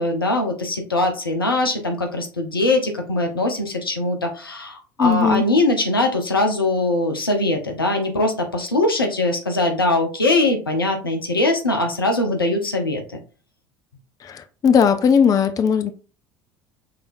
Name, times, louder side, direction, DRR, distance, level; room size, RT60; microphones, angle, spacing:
voice 1, 0.0-13.2, left 2 dB, 85° left, 0.8 m, -21 dB
voice 2, 5.0-5.4 14.2-15.9, left 7 dB, 30° left, 0.5 m, -18 dB
5.8 x 3.4 x 2.6 m
figure-of-eight pair, 65°, 12 cm